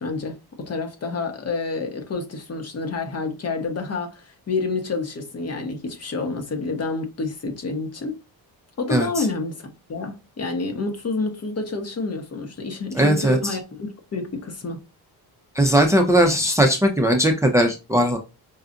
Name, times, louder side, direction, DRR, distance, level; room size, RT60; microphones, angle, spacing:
voice 1, 0.0-8.2 8.8-14.8, left 3 dB, 40° left, 1.2 m, -29 dB
voice 2, 8.9-9.2 13.0-13.4 15.6-18.2, right 1 dB, 10° right, 0.7 m, -18 dB
5.6 x 2.4 x 2.5 m
cardioid pair, 100°, 38 cm